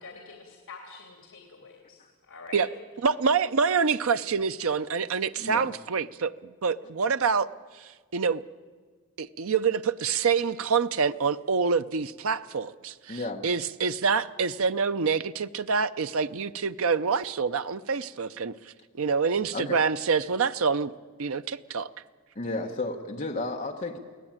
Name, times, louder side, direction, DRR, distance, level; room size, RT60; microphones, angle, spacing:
voice 1, 0.0-2.7, left 4 dB, 75° left, 2 dB, 3.1 m, -46 dB
voice 2, 3.0-7.5 7.8-8.4 9.2-18.5 19.0-20.9 21.2-21.9, right 5 dB, 70° right, 12 dB, 0.6 m, -26 dB
voice 3, 5.4-5.7 13.1-13.4 19.5-19.8 22.3-24.0, left 2 dB, 35° left, 2 dB, 1.2 m, -33 dB
24.0 x 17.0 x 8.9 m, 1.5 s
head